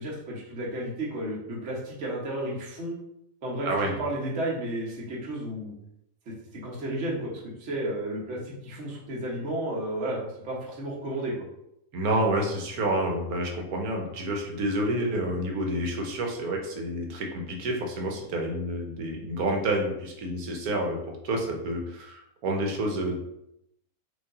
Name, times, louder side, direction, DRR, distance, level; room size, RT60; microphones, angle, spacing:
voice 1, 0.0-3.0 3.4-5.7 6.3-6.4 6.6-7.3 7.6-11.3, right 1 dB, 55° right, -4 dB, 1.4 m, -32 dB
voice 2, 11.9-21.0 21.2-23.2, right 1 dB, 80° right, 1 dB, 1.3 m, -29 dB
5.1 x 2.6 x 3.7 m, 0.81 s
omnidirectional pair, 1.5 m